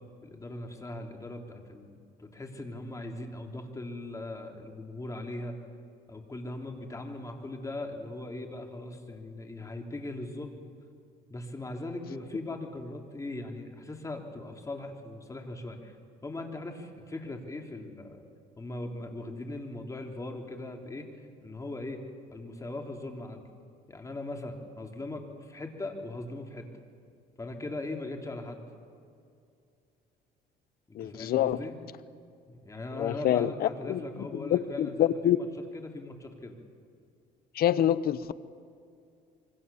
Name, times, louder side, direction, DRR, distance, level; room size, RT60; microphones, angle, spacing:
voice 1, 0.2-5.6 6.1-10.6 11.3-15.9 16.2-18.2 18.6-21.1 21.4-23.4 23.9-26.7 27.4-28.6 30.9-31.8 32.5-35.5 35.7-36.6, left 2 dB, 20° left, 3 dB, 3.3 m, -39 dB
voice 2, 30.9-31.6 32.9-35.4 37.5-38.4, left 11 dB, 65° left, 16 dB, 0.9 m, -27 dB
26.0 x 24.5 x 7.1 m, 2.4 s
cardioid pair, 110°, 17 cm